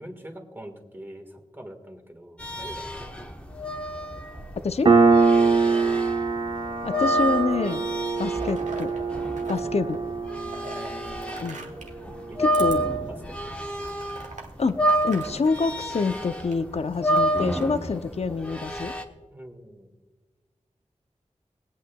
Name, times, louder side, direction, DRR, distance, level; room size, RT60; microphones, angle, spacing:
voice 1, 0.0-2.9 5.6-6.0 9.4-9.9 10.7-11.5 12.3-13.3 13.8-14.0 19.3-19.9, right 1 dB, 15° right, 2 dB, 1.7 m, -44 dB
sound 1, 2.4-11.5 11.9-14.4 14.6-19.0, right 1 dB, 10° left, 1.1 m, -29 dB
Piano, 4.9-12.0, right 4 dB, 50° right, 0.8 m, -23 dB
voice 2, 6.8-7.9 8.2-8.9 9.5-10.0 11.4-11.7 12.4-12.8 14.6-18.9, left 4 dB, 60° left, 10 dB, 0.6 m, -26 dB
sound 2, 6.9-7.6 8.0-9.6 9.9-12.0 12.5-12.7 13.2-13.3 13.8-16.6 17.4-18.0, right 2 dB, 85° right, 1.3 m, -41 dB
22.5 x 8.4 x 2.3 m, 1.3 s
wide cardioid pair, 65°, 12 cm